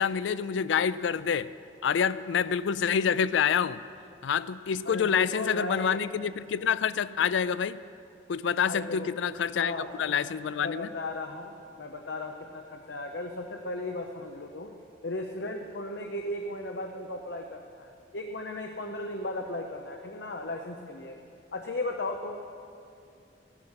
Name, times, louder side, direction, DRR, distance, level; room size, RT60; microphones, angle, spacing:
voice 1, 0.0-1.5 1.8-3.8 4.2-7.8 8.3-10.9, left 7 dB, 85° left, 16 dB, 0.4 m, -27 dB
voice 2, 4.8-6.0 8.6-9.1 9.5-10.2 10.6-14.7 15.0-21.2 21.5-22.4, left 2 dB, 70° left, 3 dB, 0.8 m, -36 dB
15.0 x 11.0 x 5.7 m, 2.6 s
head